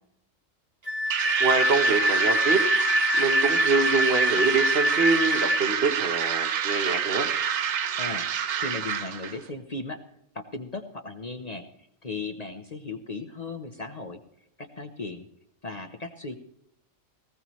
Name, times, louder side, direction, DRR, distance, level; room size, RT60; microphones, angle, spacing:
Wind instrument woodwind instrument, 0.9-5.6, left 1 dB, 10° left, 1.1 m, -25 dB
sound 1, 1.1-9.4, right 8 dB, 65° right, 1.1 m, -27 dB
voice 1, 1.4-2.6 3.2-7.3, right 4 dB, 50° right, 6 dB, 1.4 m, -25 dB
voice 2, 8.6-10.0 10.3-11.6 12.0-14.2 14.6-15.3 15.6-16.4, left 3 dB, 35° left, 6 dB, 1.0 m, -36 dB
19.0 x 15.5 x 3.1 m, 0.73 s
omnidirectional pair, 1.3 m